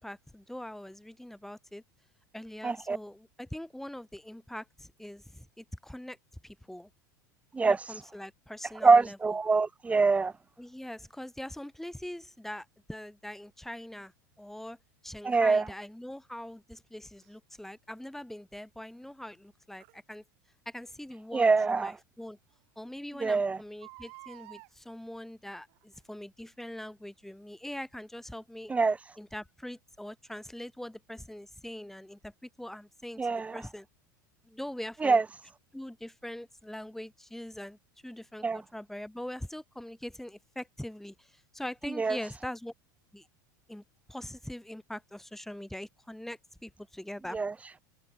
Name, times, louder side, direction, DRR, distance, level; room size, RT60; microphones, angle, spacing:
voice 1, 0.0-1.8 2.3-6.2 6.4-6.9 7.6-9.2 10.6-14.1 14.4-14.8 15.0-20.2 20.6-22.4 22.7-28.7 29.2-33.9 34.4-35.2 35.7-37.8 38.0-42.7 43.1-43.2 43.7-43.8 44.1-47.4, left 1 dB, 5° left, 6.6 m, -42 dB
voice 2, 2.6-3.0 7.5-7.8 8.8-10.3 15.2-15.6 21.3-21.9 23.2-23.6 28.7-29.0 33.2-33.6 35.0-35.2 38.4-38.6 42.0-42.2 47.3-47.5, right 4 dB, 15° right, 0.5 m, -24 dB
Crying sobbing, 17.2-17.3 19.8-20.0 21.6-21.7 22.2-22.3 22.5-22.6 23.7-24.7 25.7-26.0 26.6-26.7, right 35 dB, 60° right, 7.4 m, -51 dB
hypercardioid pair, 90°, 10 cm